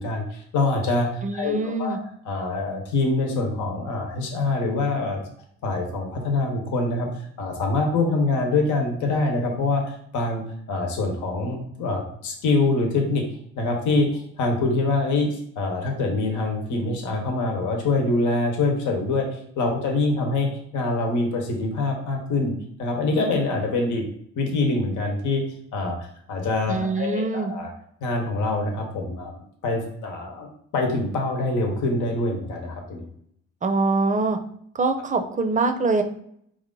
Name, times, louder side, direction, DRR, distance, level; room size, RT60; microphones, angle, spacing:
voice 1, 0.0-2.0 2.2-5.2 5.6-7.1 7.4-10.4 10.7-13.2 13.6-19.3 19.6-22.5 22.8-24.0 24.4-25.4 25.7-26.0 26.3-27.7 28.0-30.5 30.7-33.1, left 2 dB, 75° left, 2 dB, 1.1 m, -25 dB
voice 2, 1.2-2.0 26.7-27.5 33.6-34.4 34.7-36.0, right 3 dB, 25° right, 7 dB, 0.5 m, -24 dB
4.7 x 2.5 x 3.8 m, 0.69 s
cardioid pair, 90°, 30 cm